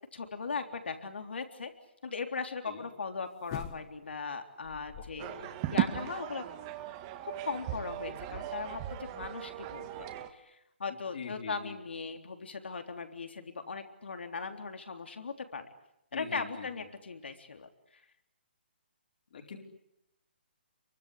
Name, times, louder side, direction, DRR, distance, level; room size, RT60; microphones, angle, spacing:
voice 1, 0.1-1.7 2.0-6.4 7.2-15.7 16.1-17.7, left 4 dB, 85° left, 5 dB, 3.6 m, -39 dB
Slide Thump, 3.5-4.2 4.6-5.4 5.8-5.9, left 11 dB, 25° left, 1.3 m, -44 dB
voice 2, 5.2-5.5 11.1-11.7 16.1-16.7 19.3-19.6, left 6 dB, 55° left, 2 dB, 4.6 m, -43 dB
sound 1, 5.2-10.3, right 13 dB, 25° right, 1.8 m, -37 dB
28.5 x 23.5 x 8.4 m, 0.82 s
hypercardioid pair, 165°, 6 cm